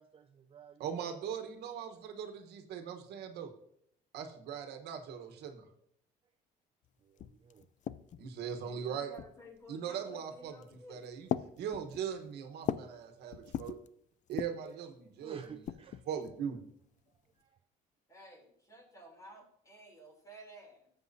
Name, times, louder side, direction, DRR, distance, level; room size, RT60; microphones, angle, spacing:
voice 1, 0.0-1.3 7.0-7.7 15.2-16.1 17.3-17.6, right 7 dB, 35° right, 7 dB, 0.5 m, -53 dB
voice 2, 0.8-3.5 4.1-5.7 8.2-9.1 9.7-11.3 11.6-13.8 14.3-15.6 16.1-16.6, right 8 dB, 75° right, 6 dB, 1.2 m, -40 dB
sound 1, 6.8-6.9 7.2-8.3 9.1-9.6 10.5-10.8 11.3-13.0 13.3-13.9 14.3-14.7 15.4-16.4, left 9 dB, 45° left, 0.4 m, -40 dB
voice 3, 8.5-11.1 18.1-20.9, equal, 20° left, 2 dB, 3.0 m, -54 dB
13.5 x 7.6 x 2.7 m, 0.69 s
cardioid pair, 110°, 17 cm